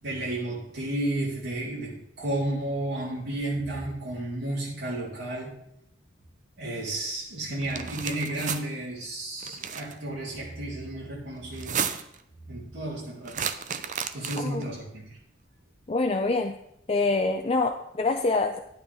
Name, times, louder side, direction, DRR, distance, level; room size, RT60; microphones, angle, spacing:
voice 1, 0.0-5.5 6.6-11.9 12.5-13.4 13.8-13.9 14.1-15.2, right 1 dB, 55° right, -8 dB, 4.2 m, -32 dB
sound 1, 7.6-8.6 9.4-9.9 11.5-12.2 13.3-14.6, right 7 dB, 40° right, 0.6 m, -32 dB
voice 2, 14.4-14.7 15.9-16.6 16.9-18.6, left 3 dB, 30° left, 4 dB, 0.5 m, -25 dB
12.0 x 8.8 x 3.6 m, 0.77 s
head